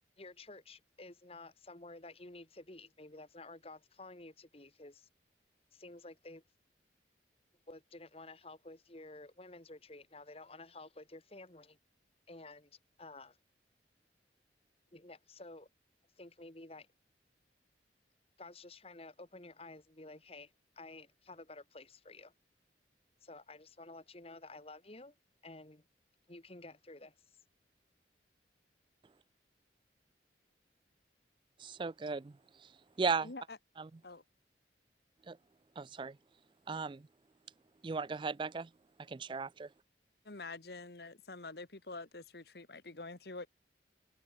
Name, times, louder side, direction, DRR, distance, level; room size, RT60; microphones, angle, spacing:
voice 1, 0.2-5.1 5.7-6.4 7.7-11.8 12.3-13.4 14.9-15.7 16.2-16.9 18.4-22.3 23.2-25.2 25.4-25.9 26.3-27.1, left 2 dB, 35° left, 1.9 m, -52 dB
voice 2, 31.6-32.7 33.0-33.3 33.8-33.9 35.3-35.4 35.8-36.2 36.7-37.1 37.8-38.7 39.1-39.7, right 4 dB, 25° right, 0.4 m, -36 dB
voice 3, 33.2-33.6 34.0-34.2 40.2-43.5, left 3 dB, 60° left, 1.5 m, -46 dB
head